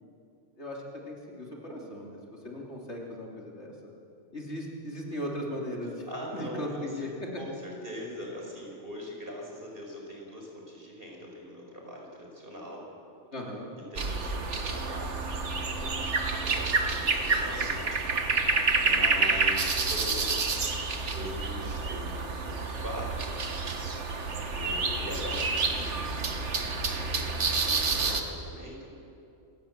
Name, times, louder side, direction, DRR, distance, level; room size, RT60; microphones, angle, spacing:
voice 1, 0.6-3.7 4.3-6.0 6.3-7.4 13.3-13.7 18.8-19.4, left 1 dB, 65° left, -1 dB, 3.5 m, -38 dB
voice 2, 6.1-12.8 13.9-18.0 18.4-20.6 21.1-23.3 24.5-29.0, equal, 50° right, -1 dB, 5.1 m, -42 dB
sound 1, 13.9-28.2, right 4 dB, 75° right, 1.9 m, -29 dB
27.0 x 17.0 x 7.5 m, 2.6 s
omnidirectional pair, 1.2 m